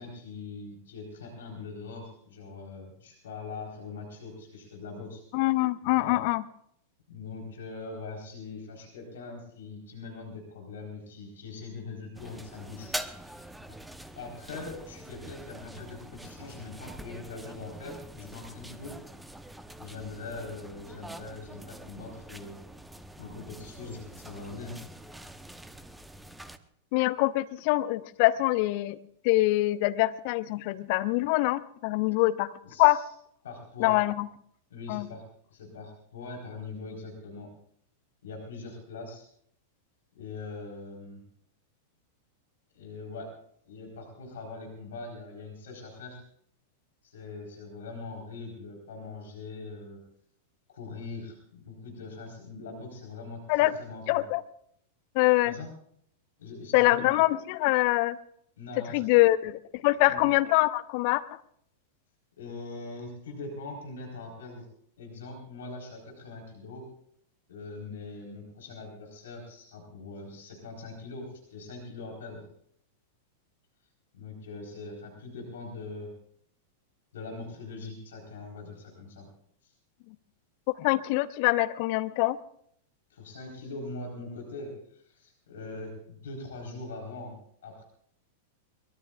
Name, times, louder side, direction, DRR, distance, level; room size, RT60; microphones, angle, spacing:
voice 1, 0.0-5.2 5.8-6.2 7.1-13.5 14.2-19.0 19.8-22.6 23.2-24.8 32.6-33.1 33.4-33.9 34.7-35.2 35.5-37.5 38.2-39.3 40.1-41.2 42.7-43.3 43.7-46.2 47.0-50.0 50.7-54.2 55.4-55.7 56.4-57.1 58.6-59.1 60.1-60.2 62.4-64.7 65.0-66.9 67.5-72.4 74.1-76.1 77.1-79.3 79.6-79.7 83.1-87.4 87.6-87.8, left 3 dB, 65° left, 1 dB, 4.2 m, -42 dB
voice 2, 5.3-6.4 26.9-29.0 29.2-32.5 32.8-33.0 33.8-34.3 34.9-35.1 53.5-53.7 54.1-54.4 55.1-55.5 56.7-58.2 58.9-61.2 80.8-82.4, left 19 dB, 45° left, 14 dB, 0.8 m, -24 dB
sound 1, 12.1-26.6, right 1 dB, 5° right, 0.9 m, -44 dB
23.0 x 21.0 x 2.5 m, 0.67 s
figure-of-eight pair, 95°, 0 cm